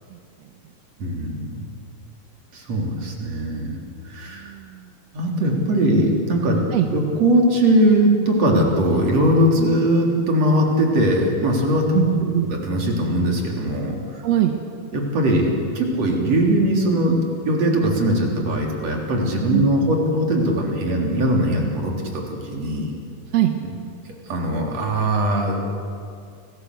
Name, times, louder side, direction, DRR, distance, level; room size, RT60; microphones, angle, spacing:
voice 1, 1.0-1.7 2.5-3.8 4.0-4.5 5.1-6.6 6.9-12.0 12.5-14.2 14.9-22.9 24.3-25.6, right 1 dB, 45° right, 0 dB, 4.4 m, -20 dB
voice 2, 4.3-4.9 6.7-6.9 11.9-12.6 14.2-14.5 19.5-19.9 23.3-23.6, right 13 dB, 65° right, 5 dB, 1.8 m, -22 dB
29.0 x 19.0 x 8.2 m, 2.4 s
omnidirectional pair, 4.5 m